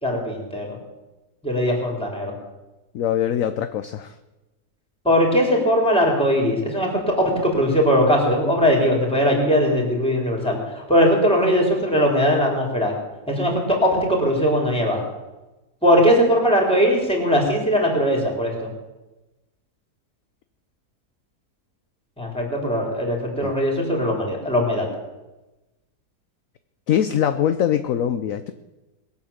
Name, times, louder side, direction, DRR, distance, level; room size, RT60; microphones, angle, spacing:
voice 1, 0.0-0.7 1.4-2.3 5.0-12.9 13.3-15.0 15.8-18.7 22.2-24.9, equal, 5° left, -1 dB, 4.1 m, -20 dB
voice 2, 2.9-4.1 23.4-23.5 26.9-28.5, left 10 dB, 65° left, 10 dB, 1.0 m, -22 dB
21.5 x 8.7 x 7.3 m, 1.1 s
omnidirectional pair, 1.7 m